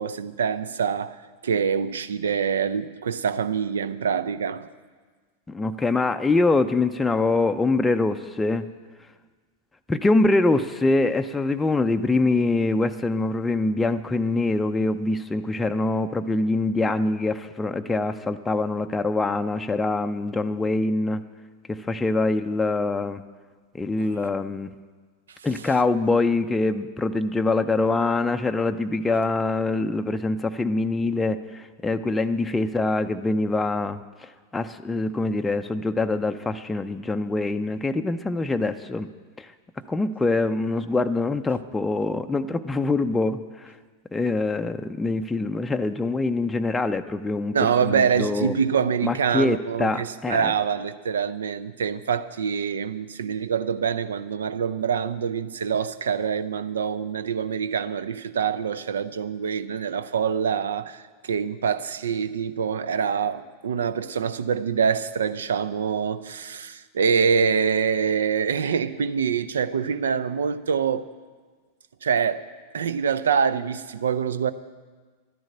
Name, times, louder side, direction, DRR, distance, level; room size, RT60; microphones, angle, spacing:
voice 1, 0.0-4.7 24.0-24.3 47.5-71.1 72.0-72.4 72.7-74.5, right 6 dB, 65° right, 0.6 m, -25 dB
voice 2, 5.5-8.7 9.9-21.2 21.7-23.2 23.7-24.7 25.4-39.1 39.4-39.5 39.9-43.7 44.1-47.6 47.8-48.6 49.0-50.5, left 2 dB, 10° left, 0.5 m, -24 dB
12.0 x 10.5 x 8.7 m
figure-of-eight pair, 90°, 0 cm